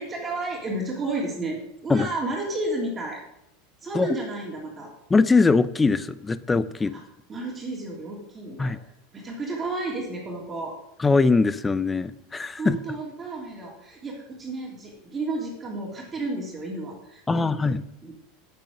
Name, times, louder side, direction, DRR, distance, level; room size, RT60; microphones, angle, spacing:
voice 1, 0.0-3.2 3.8-4.9 6.9-7.0 7.3-8.7 9.1-10.8 12.6-17.7 18.0-18.2, right 2 dB, 20° right, -2 dB, 3.2 m, -32 dB
voice 2, 5.1-7.0 8.6-8.8 11.0-12.8 17.3-17.8, left 4 dB, 15° left, 16 dB, 0.6 m, -21 dB
9.1 x 8.6 x 6.5 m, 0.82 s
supercardioid pair, 125°, 0 cm